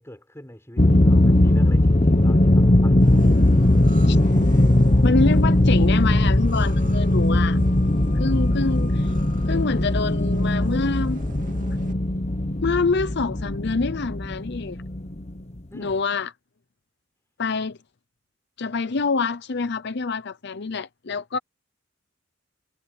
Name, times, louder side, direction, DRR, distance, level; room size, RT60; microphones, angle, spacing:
voice 1, 0.0-3.0 15.7-16.0, left 1 dB, 15° left, 5.1 m, -44 dB
sound 1, 0.8-15.6, left 1 dB, 35° left, 1.0 m, -19 dB
sound 2, 3.0-11.9, right 2 dB, 45° right, 2.3 m, -43 dB
voice 2, 5.0-7.6 8.2-9.1 9.5-11.2 12.6-14.8 15.7-16.3 17.4-17.8 18.6-21.4, left 4 dB, 60° left, 0.7 m, -26 dB
head